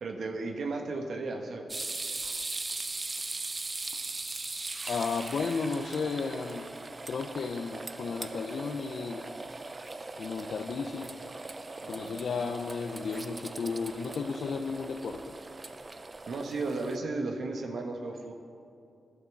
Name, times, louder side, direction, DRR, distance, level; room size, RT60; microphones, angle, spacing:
voice 1, 0.0-1.7 11.8-12.2 16.3-18.3, right 3 dB, 75° right, 2 dB, 1.1 m, -34 dB
sound 1, 1.7-17.0, right 3 dB, 35° right, 0.6 m, -40 dB
voice 2, 4.9-6.7 7.1-9.2 10.2-11.4 11.8-15.3, left 4 dB, 70° left, 4 dB, 0.7 m, -34 dB
11.0 x 8.9 x 7.1 m, 2.5 s
cardioid pair, 55°, 0 cm